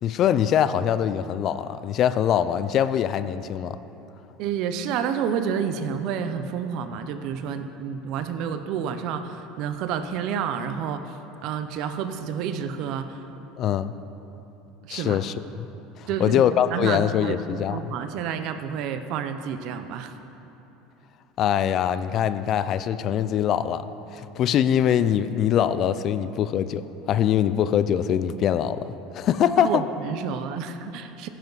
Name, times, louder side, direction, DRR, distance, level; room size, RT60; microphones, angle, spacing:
voice 1, 0.0-3.8 13.6-13.9 14.9-15.7 16.0-17.9 21.4-23.9 24.1-29.8, left 9 dB, 40° left, 13 dB, 0.4 m, -23 dB
voice 2, 4.4-11.1 11.4-13.2 14.8-15.2 16.1-16.4 16.7-20.1 29.6-31.3, right 7 dB, 50° right, 9 dB, 0.7 m, -29 dB
15.0 x 11.0 x 4.1 m, 3.0 s
cardioid pair, 155°, 0 cm